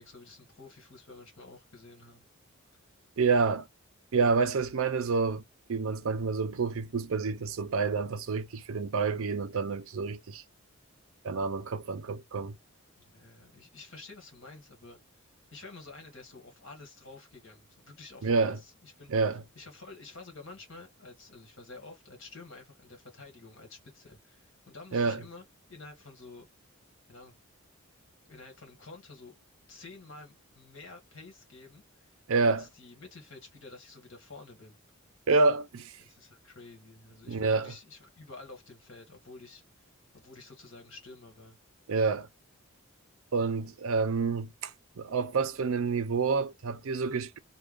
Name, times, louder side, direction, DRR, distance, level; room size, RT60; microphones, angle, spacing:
voice 1, 0.0-2.3 13.0-15.0 15.5-19.1 19.6-26.5 27.1-27.4 28.3-29.3 29.7-32.1 32.4-34.8 36.0-39.6 40.1-41.6, left 3 dB, 60° left, 1.7 m, -50 dB
voice 2, 3.2-3.7 4.1-5.4 5.7-10.4 11.2-12.6 18.2-18.6 19.1-19.4 24.9-25.2 32.3-32.6 35.3-35.9 37.3-37.7 41.9-42.3 43.3-44.7 45.0-47.4, right 4 dB, 70° right, 0.5 m, -28 dB
3.4 x 2.3 x 3.5 m
head